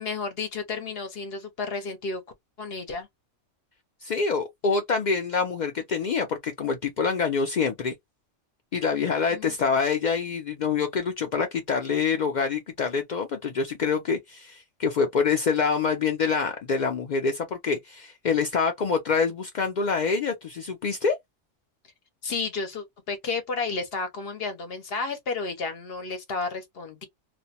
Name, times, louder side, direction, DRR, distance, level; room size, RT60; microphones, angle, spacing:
voice 1, 0.0-2.2 2.6-3.1 8.9-9.5 22.2-27.0, left 4 dB, 60° left, 0.7 m, -32 dB
voice 2, 4.0-7.9 8.7-21.2, left 5 dB, 85° left, 0.4 m, -26 dB
2.4 x 2.1 x 2.7 m
omnidirectional pair, 1.3 m